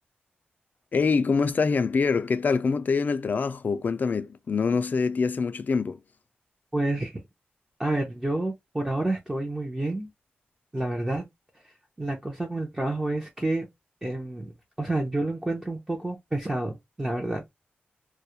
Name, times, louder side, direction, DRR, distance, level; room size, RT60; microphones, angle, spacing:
voice 1, 0.9-6.0, left 5 dB, 50° left, 0.3 m, -25 dB
voice 2, 6.7-7.2 7.8-10.1 10.7-11.2 12.0-13.7 14.0-14.5 14.8-17.5, right 2 dB, 15° right, 0.6 m, -29 dB
2.3 x 2.0 x 2.8 m
wide cardioid pair, 90°, 4 cm